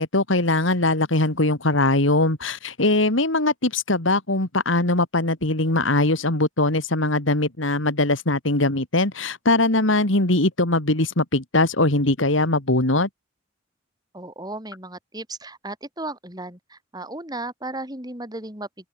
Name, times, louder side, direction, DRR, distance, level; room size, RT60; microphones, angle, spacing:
voice 1, 0.0-13.1, left 2 dB, 75° left, 3.1 m, -21 dB
voice 2, 14.1-18.7, right 2 dB, 20° right, 6.0 m, -35 dB
open air
head